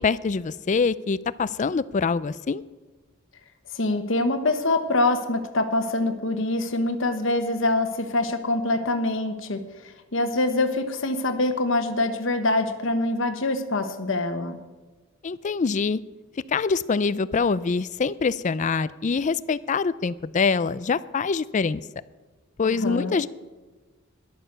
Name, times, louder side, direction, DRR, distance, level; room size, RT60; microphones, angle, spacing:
voice 1, 0.0-2.6 15.2-16.0 16.5-21.8 22.6-23.3, left 5 dB, 35° left, 17 dB, 0.4 m, -24 dB
voice 2, 3.7-14.6 22.6-23.2, left 2 dB, 65° left, 6 dB, 1.1 m, -25 dB
14.0 x 11.0 x 6.7 m, 1.3 s
head